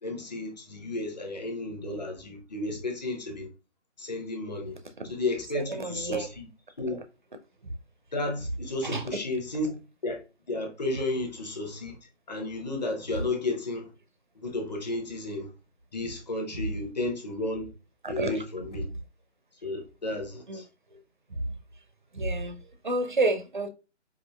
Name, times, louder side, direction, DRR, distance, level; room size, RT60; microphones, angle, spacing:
voice 1, 0.0-3.5 4.0-4.8 5.0-6.5 6.8-7.0 8.1-12.0 12.3-13.9 14.3-15.5 15.9-17.7 18.1-18.9 19.6-20.7, left 2 dB, 35° left, 0.8 m, -33 dB
voice 2, 5.5-6.3 7.6-7.7 8.8-9.2 18.0-18.4 20.5-20.6 20.9-21.0 21.3-21.5 22.1-23.7, right 2 dB, 45° right, 0.4 m, -30 dB
4.9 x 2.5 x 2.3 m
figure-of-eight pair, 150°, 36 cm